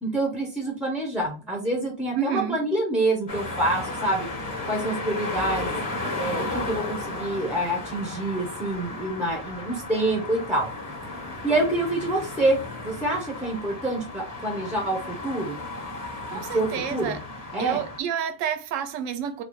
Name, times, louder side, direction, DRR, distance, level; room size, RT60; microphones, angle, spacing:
voice 1, 0.0-4.3 4.7-5.8 6.1-10.7 11.4-12.6 12.8-15.6 16.3-17.2 17.5-17.8, right 2 dB, ahead, 0.5 m, -27 dB
voice 2, 2.1-2.6 16.3-17.2 17.6-19.4, right 8 dB, 70° right, 0.9 m, -29 dB
sound 1, 3.3-18.0, left 2 dB, 35° left, 0.8 m, -34 dB
3.9 x 2.3 x 3.0 m
omnidirectional pair, 1.5 m